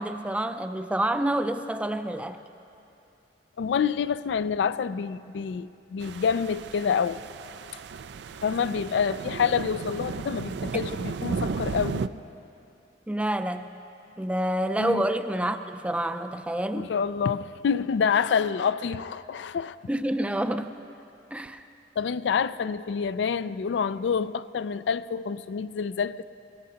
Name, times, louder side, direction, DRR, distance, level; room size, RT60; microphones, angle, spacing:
voice 1, 0.0-2.4 13.1-13.7 14.2-16.9 19.9-20.7 21.3-21.7, right 1 dB, 5° right, 0.4 m, -28 dB
voice 2, 3.6-7.2 8.4-12.0 14.8-15.0 16.7-19.8 22.0-26.2, left 6 dB, 80° left, 0.4 m, -27 dB
sound 1, 6.0-12.1, right 5 dB, 75° right, 0.4 m, -34 dB
22.5 x 18.0 x 2.9 m
head